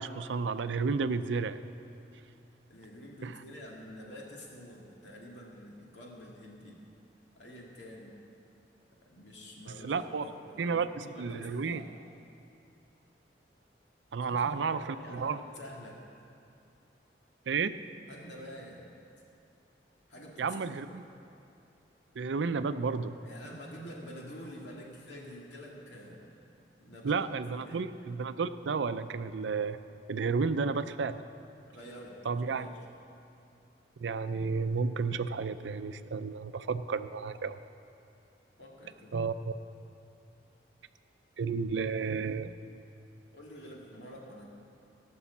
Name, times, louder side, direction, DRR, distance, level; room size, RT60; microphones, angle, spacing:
voice 1, 0.0-1.6 3.2-3.3 9.8-10.3 10.6-11.8 14.1-15.4 17.5-17.7 20.4-21.0 22.2-23.1 27.0-29.8 30.1-31.3 32.2-32.7 34.0-37.6 39.1-39.6 41.4-42.6, right 5 dB, 90° right, 12 dB, 0.5 m, -32 dB
voice 2, 2.7-6.8 7.3-8.2 9.1-11.9 14.2-16.1 18.1-18.8 20.1-20.8 23.2-26.4 26.8-27.9 31.7-32.8 38.6-39.1 43.3-44.4, equal, 80° left, -2 dB, 2.3 m, -48 dB
17.0 x 6.2 x 7.2 m, 2.7 s
head